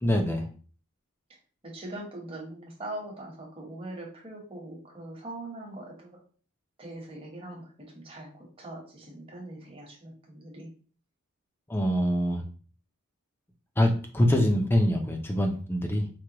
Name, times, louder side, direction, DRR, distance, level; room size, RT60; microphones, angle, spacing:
voice 1, 0.0-0.4 11.7-12.4 13.8-16.1, equal, 10° left, 3 dB, 0.5 m, -24 dB
voice 2, 1.6-6.2 6.8-10.7, right 1 dB, 25° right, -2 dB, 1.0 m, -41 dB
4.7 x 2.2 x 2.9 m, 0.41 s
head